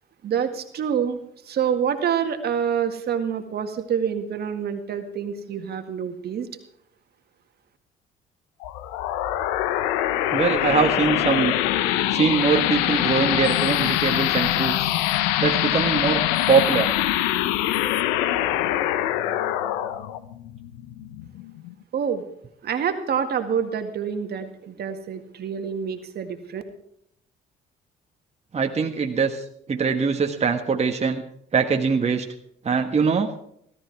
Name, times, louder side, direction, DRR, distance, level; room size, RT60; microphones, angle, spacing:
voice 1, 0.2-1.2 1.4-6.5 21.9-22.2 22.6-26.6, right 7 dB, 60° right, 7 dB, 1.9 m, -27 dB
sound 1, 8.6-21.7, left 13 dB, 90° left, 0.9 m, -24 dB
voice 2, 10.3-11.6 12.1-14.9 15.4-16.9 28.5-31.2 31.5-32.2 32.6-33.3, right 5 dB, 35° right, 4 dB, 1.5 m, -22 dB
17.0 x 13.0 x 4.6 m, 0.70 s
supercardioid pair, 65°, 18 cm